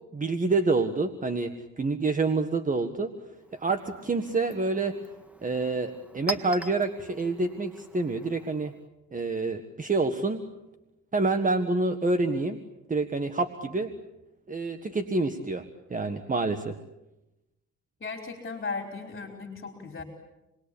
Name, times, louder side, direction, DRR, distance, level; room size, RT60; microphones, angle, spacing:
voice 1, 0.1-3.1 3.5-5.0 5.4-8.7 9.1-10.4 11.1-12.6 12.9-13.9 14.5-15.6 15.9-16.7, right 3 dB, 25° right, 8 dB, 1.6 m, -27 dB
Chink clink, 3.3-8.9, right 1 dB, 5° right, 1.6 m, -43 dB
voice 2, 18.0-20.0, left 4 dB, 35° left, 4 dB, 4.6 m, -36 dB
29.0 x 21.0 x 8.7 m, 0.97 s
cardioid pair, 90°, 30 cm